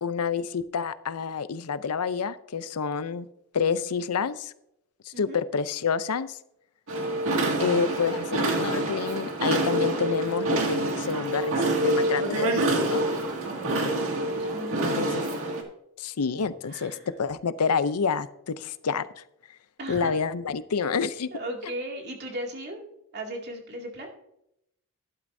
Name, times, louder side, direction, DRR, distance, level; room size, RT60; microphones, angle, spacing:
voice 1, 0.0-3.3 3.5-4.5 5.1-6.4 7.6-13.0 15.0-15.1 16.0-19.1 19.9-21.3 21.6-21.7, left 6 dB, 85° left, 14 dB, 0.6 m, -28 dB
sound 1, 6.9-15.6, right 2 dB, 65° right, 2.1 m, -26 dB
voice 2, 13.4-15.3 16.7-17.1 19.8-20.1 21.3-22.8 23.1-24.1, right 1 dB, 50° right, 1 dB, 2.4 m, -37 dB
12.0 x 11.5 x 2.7 m, 0.79 s
head